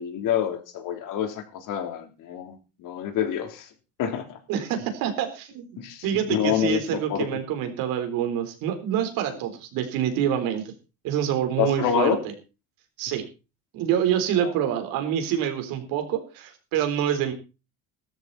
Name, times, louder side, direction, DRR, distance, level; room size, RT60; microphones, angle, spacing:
voice 1, 0.0-3.7 4.0-4.4 5.8-7.4 11.6-12.2, left 9 dB, 65° left, 6 dB, 3.4 m, -27 dB
voice 2, 4.5-5.7 6.0-10.7 11.0-12.2 13.0-13.2 13.7-17.3, right 9 dB, 80° right, 6 dB, 4.0 m, -26 dB
15.0 x 13.0 x 4.1 m, 0.31 s
cardioid pair, 110°, 34 cm